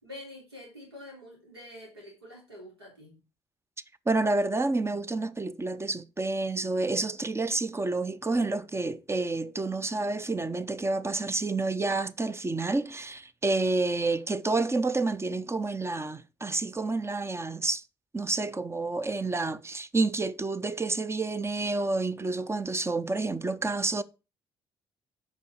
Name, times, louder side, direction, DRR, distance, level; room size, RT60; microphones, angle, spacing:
voice 1, 0.0-3.2, left 1 dB, 90° right, 3.4 m, -46 dB
voice 2, 4.1-17.8 18.1-24.0, right 3 dB, 20° right, 0.7 m, -29 dB
8.1 x 5.4 x 4.9 m
figure-of-eight pair, 45°, 13 cm